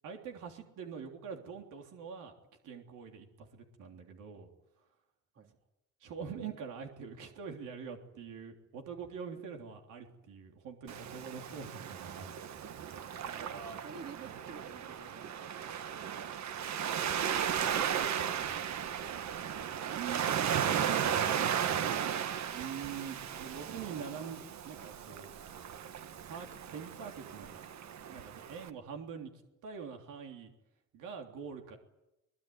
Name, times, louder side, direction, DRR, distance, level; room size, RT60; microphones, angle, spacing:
voice 1, 0.0-2.3 2.6-4.5 6.0-12.3 13.2-13.8 16.8-18.7 19.6-20.3 20.7-25.3 26.2-27.6 28.1-29.3 29.6-30.5 30.9-31.8, right 6 dB, 90° right, 3 dB, 3.4 m, -45 dB
Waves surf, 10.9-28.7, right 8 dB, 65° right, 1.5 m, -35 dB
voice 2, 13.2-15.6, right 5 dB, 50° right, 4 dB, 3.3 m, -51 dB
22.5 x 21.0 x 9.6 m, 0.92 s
cardioid pair, 90°, 30 cm